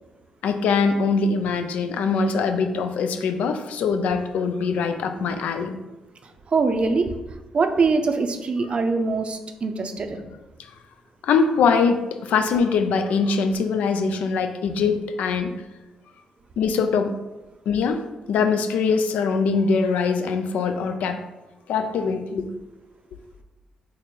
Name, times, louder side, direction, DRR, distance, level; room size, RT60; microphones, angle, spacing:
voice 1, 0.4-5.8 10.6-10.7 11.2-15.5 16.6-17.1 17.7-21.2 21.7-22.5, left 5 dB, 75° left, 7 dB, 0.3 m, -22 dB
voice 2, 6.2-7.1 7.5-10.2, right 4 dB, 45° right, 6 dB, 0.4 m, -23 dB
3.5 x 2.1 x 4.2 m, 1.1 s
supercardioid pair, 50°, 3 cm